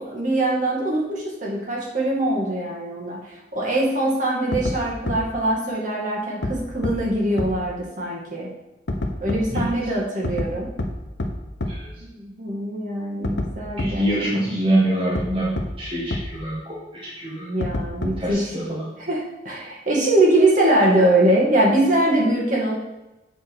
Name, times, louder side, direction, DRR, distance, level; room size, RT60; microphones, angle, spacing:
voice 1, 0.0-8.5 9.2-10.7 12.0-14.3 17.4-18.6 19.1-22.8, right 1 dB, 45° right, -4 dB, 2.3 m, -22 dB
sound 1, 4.5-4.7 5.1-5.2 6.4-6.5 6.8-6.9 7.4-7.5 8.9-9.7 10.2-10.5 10.8-10.9 11.2-11.3 11.6-11.7 13.2-13.5 13.8-13.9 15.2-15.3 15.6-15.7 16.1-16.2 17.6-18.3, left 1 dB, 85° left, 1.1 m, -25 dB
voice 2, 13.8-15.5 15.8-17.5 18.2-18.9, right 1 dB, 30° right, -7 dB, 1.8 m, -25 dB
8.6 x 4.4 x 6.3 m, 1.0 s
head